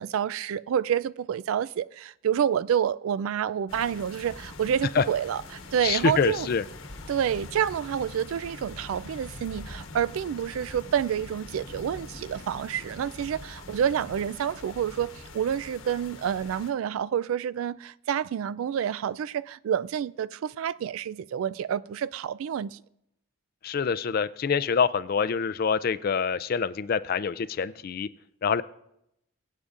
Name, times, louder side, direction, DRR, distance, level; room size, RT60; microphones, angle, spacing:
voice 1, 0.0-6.5 7.1-22.8, right 8 dB, 75° right, 0.3 m, -28 dB
sound 1, 3.7-16.7, left 2 dB, 70° left, 1.1 m, -43 dB
voice 2, 5.8-6.6 23.6-28.1 28.4-28.6, left 6 dB, 45° left, 0.3 m, -26 dB
23.5 x 8.2 x 2.5 m
head